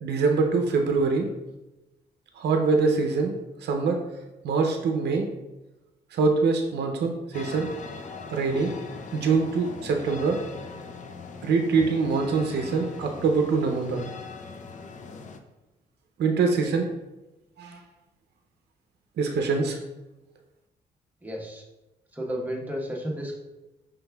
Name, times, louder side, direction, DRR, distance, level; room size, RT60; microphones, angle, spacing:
voice 1, 0.0-1.3 2.4-3.3 3.6-4.0 4.4-5.3 6.1-7.7 8.3-8.7 9.1-10.4 11.4-14.0 16.2-16.9 17.6-17.8 19.2-19.8, right 4 dB, 75° right, 3 dB, 0.6 m, -24 dB
sound 1, 7.3-15.4, left 4 dB, 45° left, 0.5 m, -40 dB
voice 2, 21.2-21.6 22.1-23.4, equal, 10° right, -2 dB, 1.0 m, -32 dB
5.3 x 3.4 x 2.3 m, 1.0 s
cardioid pair, 70°, 18 cm